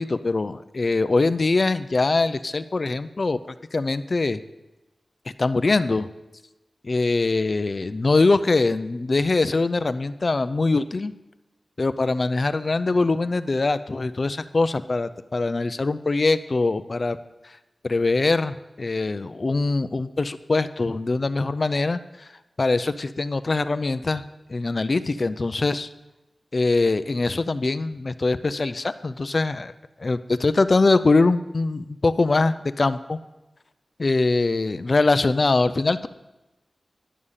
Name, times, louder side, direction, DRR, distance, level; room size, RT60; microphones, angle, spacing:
voice 1, 0.0-4.4 5.4-6.1 6.8-11.1 11.8-17.2 17.4-17.5 17.8-22.3 22.6-24.2 24.5-25.9 26.5-29.7 30.0-33.2 34.0-36.1, left 3 dB, 45° left, 13 dB, 0.5 m, -23 dB
11.0 x 6.6 x 5.5 m, 1.0 s
wide cardioid pair, 105°, 0 cm